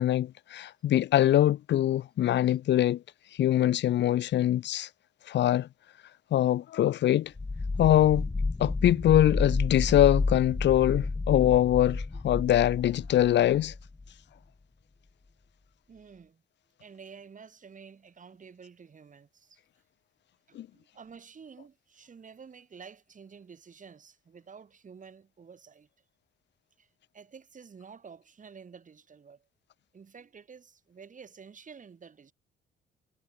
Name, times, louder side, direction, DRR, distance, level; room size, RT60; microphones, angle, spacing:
voice 1, 0.0-3.0 3.4-4.9 5.3-5.7 6.3-7.3 7.8-8.3 8.6-13.7 20.5-20.7, left 12 dB, 65° left, 0.7 m, -23 dB
sound 1, 7.4-14.1, left 3 dB, 15° left, 0.8 m, -31 dB
voice 2, 15.9-16.4 16.8-19.6 20.5-25.9 26.8-29.5 29.9-32.3, right 6 dB, 40° right, 4.7 m, -50 dB
cardioid pair, 90°, 20 cm